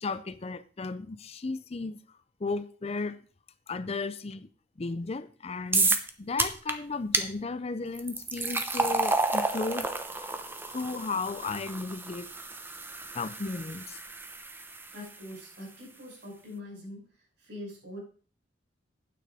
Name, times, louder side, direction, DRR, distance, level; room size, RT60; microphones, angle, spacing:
voice 1, 0.0-2.0 2.4-3.2 3.7-4.5 4.8-12.3 13.1-14.0, left 3 dB, 35° left, 0.5 m, -35 dB
sound 1, 5.7-6.1 6.4-6.7 7.1-7.3 7.9-15.1, right 3 dB, 10° right, 0.8 m, -30 dB
voice 2, 14.9-18.0, left 1 dB, 65° right, 5.8 m, -43 dB
9.3 x 8.8 x 4.9 m
head